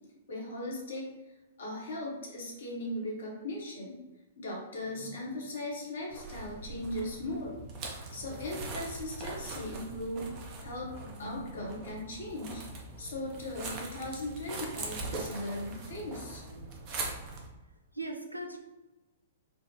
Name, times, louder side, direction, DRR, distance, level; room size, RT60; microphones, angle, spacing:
voice 1, 0.3-1.1 1.6-4.0 4.4-10.3 10.6-12.6 13.0-16.4, left 1 dB, 60° left, -2 dB, 0.9 m, -38 dB
sound 1, 6.1-17.5, right 3 dB, 35° right, 0.5 m, -41 dB
voice 2, 17.2-18.6, right 2 dB, 90° right, 3 dB, 0.4 m, -41 dB
3.3 x 2.0 x 2.9 m, 1.1 s
figure-of-eight pair, 110°, 0 cm